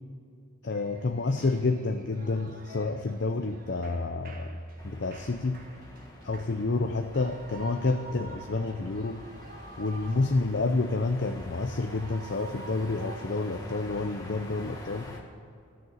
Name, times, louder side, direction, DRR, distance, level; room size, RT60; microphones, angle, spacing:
voice 1, 0.6-4.6 4.8-5.6 6.2-9.2 9.8-15.2, left 3 dB, 55° left, 6 dB, 0.6 m, -29 dB
Shout / Cheering, 0.6-14.5, right 2 dB, 45° right, 1.5 m, -49 dB
sound 1, 4.8-15.2, left 1 dB, 15° left, 1.6 m, -47 dB
15.0 x 6.7 x 8.9 m, 2.5 s
head